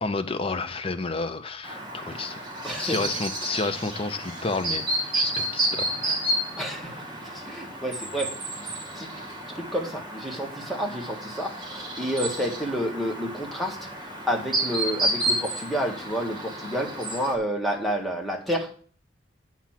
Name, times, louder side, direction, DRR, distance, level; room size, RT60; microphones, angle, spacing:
voice 1, 0.0-2.5 2.8-6.2, left 3 dB, 30° left, 8 dB, 0.7 m, -31 dB
Chirp tweet, 1.6-17.3, right 1 dB, 25° right, 2.0 m, -31 dB
voice 2, 2.6-3.0 6.6-9.1 9.5-13.8 14.3-18.7, equal, ahead, 0 dB, 1.7 m, -30 dB
8.6 x 6.0 x 5.9 m, 0.43 s
head